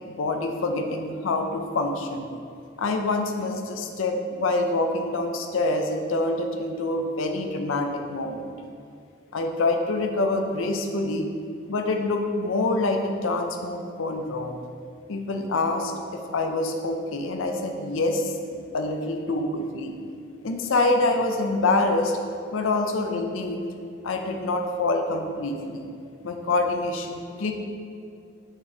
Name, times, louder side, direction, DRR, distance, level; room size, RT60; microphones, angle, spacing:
voice 1, 0.1-2.3 2.8-8.4 9.3-11.3 11.7-14.6 15.1-19.9 20.4-22.2 22.5-23.7 24.0-25.9 26.2-27.5, left 2 dB, 75° left, 4 dB, 0.5 m, -26 dB
6.1 x 4.1 x 3.8 m, 2.4 s
head